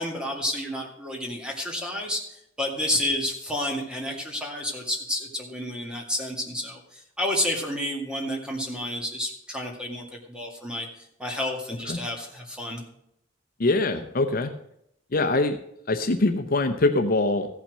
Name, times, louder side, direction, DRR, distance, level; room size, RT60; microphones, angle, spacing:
voice 1, 0.0-12.8, left 1 dB, 5° right, 0 dB, 2.1 m, -30 dB
voice 2, 13.6-14.5 15.1-15.6 15.9-17.5, left 2 dB, 50° left, 6 dB, 0.7 m, -23 dB
15.0 x 5.8 x 6.3 m, 0.76 s
head